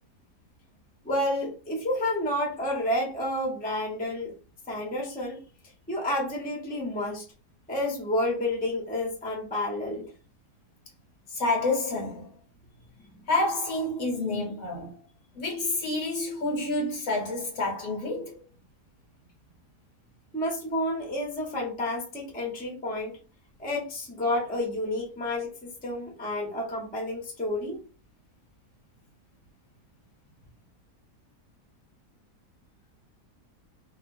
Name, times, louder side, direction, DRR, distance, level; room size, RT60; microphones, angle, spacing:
voice 1, 1.0-4.3 4.7-5.4 5.9-7.3 7.7-10.0 20.3-23.2 23.6-27.8, left 1 dB, 10° left, 0.7 m, -30 dB
voice 2, 11.3-12.3 13.3-14.9 15.3-18.4, left 2 dB, 60° left, 1.1 m, -28 dB
2.9 x 2.3 x 2.6 m
omnidirectional pair, 1.7 m